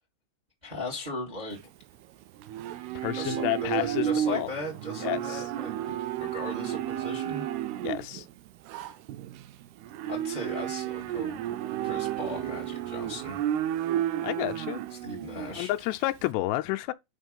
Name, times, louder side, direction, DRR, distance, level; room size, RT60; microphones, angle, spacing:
voice 1, 0.6-1.6 3.2-7.4 10.1-11.4 11.8-13.4 15.0-15.7, left 1 dB, 15° right, 1.6 m, -38 dB
Livestock farm animals working animals, 1.5-16.3, right 11 dB, 80° right, 2.6 m, -32 dB
voice 2, 3.0-4.5 5.0-5.4 7.8-8.3 14.2-14.8 15.6-16.9, left 17 dB, 85° left, 2.8 m, -30 dB
5.7 x 5.6 x 5.4 m
omnidirectional pair, 4.8 m